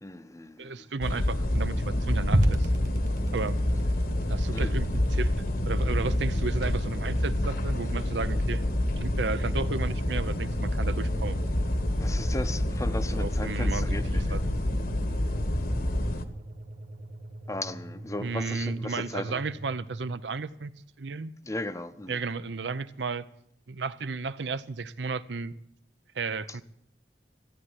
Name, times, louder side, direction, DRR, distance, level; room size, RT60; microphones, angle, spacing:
voice 1, 0.0-0.9 4.5-5.0 12.0-14.4 17.5-19.5 21.4-22.2 26.5-26.6, left 2 dB, 20° left, 0.7 m, -37 dB
voice 2, 0.6-2.7 3.3-3.6 4.3-5.3 5.7-8.6 9.0-11.4 13.1-14.4 18.2-20.7 21.0-21.3 22.1-23.2 23.7-25.5 26.1-26.6, right 4 dB, 80° right, 0.7 m, -33 dB
sound 1, 1.0-16.3, left 1 dB, 55° left, 1.2 m, -27 dB
sound 2, 2.3-20.5, equal, 45° right, 1.6 m, -37 dB
14.0 x 8.9 x 9.6 m
head